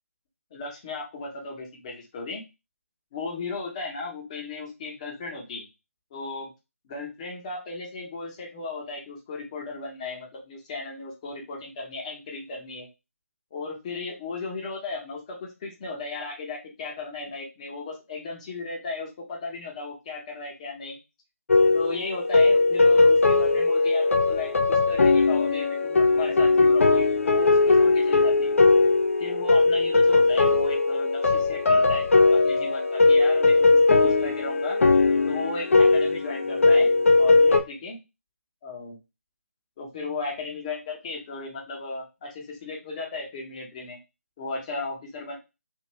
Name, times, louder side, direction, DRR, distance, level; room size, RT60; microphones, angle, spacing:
voice 1, 0.5-2.4 3.1-5.6 6.1-6.5 6.8-12.9 13.5-21.0 21.7-28.5 29.2-32.1 32.3-33.5 33.9-34.8 35.2-36.9 37.2-38.0 38.6-39.0 39.8-44.0 44.4-45.4, left 3 dB, 25° left, -1 dB, 1.0 m, -35 dB
sound 1, 21.5-37.6, left 3 dB, 60° left, 0.6 m, -19 dB
2.8 x 2.6 x 3.1 m, 0.26 s
figure-of-eight pair, 150°, 8 cm